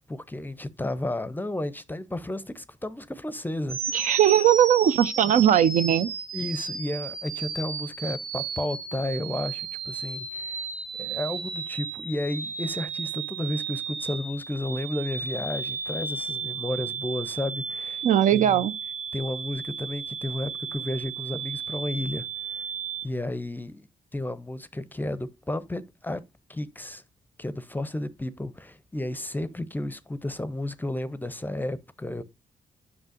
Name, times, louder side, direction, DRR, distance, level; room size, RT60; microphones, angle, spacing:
voice 1, 0.0-4.1 5.2-5.3 6.3-10.6 11.0-18.0 18.3-18.7 19.1-22.6 23.0-23.9 24.1-26.2 26.5-27.0 27.4-32.2, left 1 dB, 15° left, 0.6 m, -32 dB
sound 1, 3.7-23.1, right 6 dB, 85° right, 1.1 m, -34 dB
voice 2, 3.9-6.1 18.0-18.7, right 10 dB, 65° right, 0.5 m, -19 dB
7.9 x 5.5 x 2.5 m
supercardioid pair, 60°, 14 cm